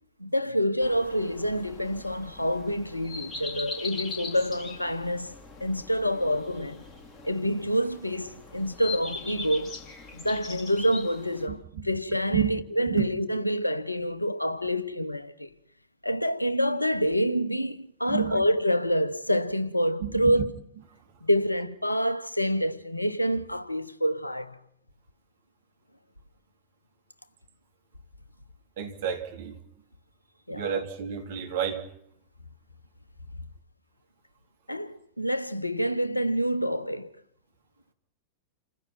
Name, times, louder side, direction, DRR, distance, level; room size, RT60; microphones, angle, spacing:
voice 1, 0.2-5.3 5.6-6.8 7.2-9.8 10.1-15.5 16.0-20.5 21.2-24.6 30.5-30.7 34.7-37.1, equal, 85° left, 1.0 m, -27 dB
sound 1, 0.8-11.5, left 4 dB, 25° left, 3.5 m, -41 dB
voice 2, 11.5-11.9 12.3-12.5 12.8-13.1 18.1-18.4 20.0-20.4 20.9-21.2 28.8-29.6 30.5-31.9, right 9 dB, 55° right, 2.9 m, -30 dB
28.5 x 15.5 x 6.0 m
figure-of-eight pair, 90°, 0 cm